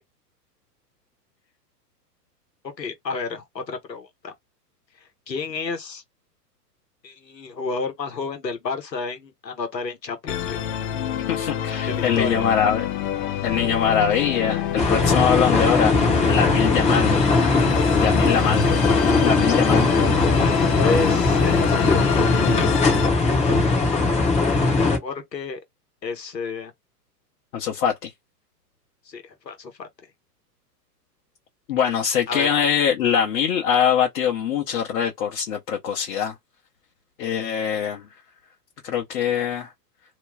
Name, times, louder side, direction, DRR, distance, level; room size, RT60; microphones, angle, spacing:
voice 1, 2.8-4.3 5.3-6.0 7.0-10.6 11.9-12.5 20.7-22.3 25.0-25.6 26.0-26.7 29.1-29.9 32.3-32.7, left 4 dB, 85° left, 1.2 m, -30 dB
Musical instrument, 10.3-23.1, left 10 dB, 30° left, 0.6 m, -27 dB
voice 2, 11.3-12.8 13.4-15.9 16.2-17.2 17.9-18.7 19.2-19.9 27.5-28.1 31.7-36.3 37.2-38.1 38.8-39.7, left 8 dB, 60° left, 1.0 m, -23 dB
sound 1, 14.8-25.0, left 3 dB, 15° left, 0.9 m, -19 dB
3.0 x 2.1 x 3.3 m
hypercardioid pair, 105°, 49 cm